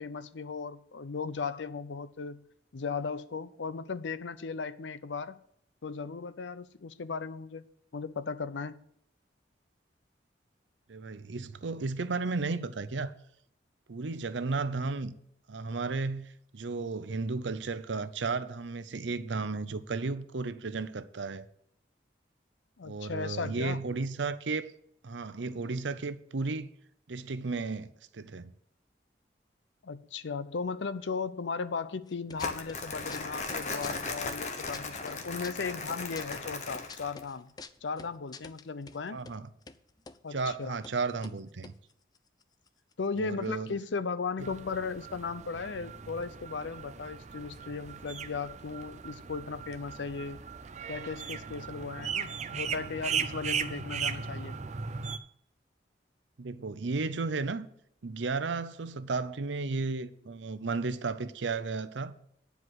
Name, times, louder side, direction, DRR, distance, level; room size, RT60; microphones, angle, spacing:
voice 1, 0.0-2.5 2.7-5.4 5.8-7.6 7.9-8.8 22.8-23.8 29.8-37.5 37.8-39.2 40.2-40.8 43.0-50.5 50.9-54.6, left 5 dB, 85° left, 0.6 m, -36 dB
voice 2, 10.9-13.1 13.9-15.2 15.5-21.4 22.8-24.7 25.0-26.7 27.1-28.5 39.1-39.5 40.3-41.7 43.2-43.8 44.4-44.5 56.4-57.7 58.0-62.1, right 3 dB, 85° right, 0.7 m, -34 dB
sound 1, 32.1-32.8 33.1-34.8 35.1-39.0 39.3-39.4 39.6-40.2 40.5-40.6 40.8-41.0 41.2-42.9 43.2-43.3 43.4-43.8, left 4 dB, 20° left, 0.4 m, -48 dB
Crumpling crinkling, 32.4-37.2, left 3 dB, 40° left, 1.1 m, -37 dB
sound 2, 44.4-55.2, right 6 dB, 40° right, 0.5 m, -37 dB
9.8 x 4.8 x 7.9 m
head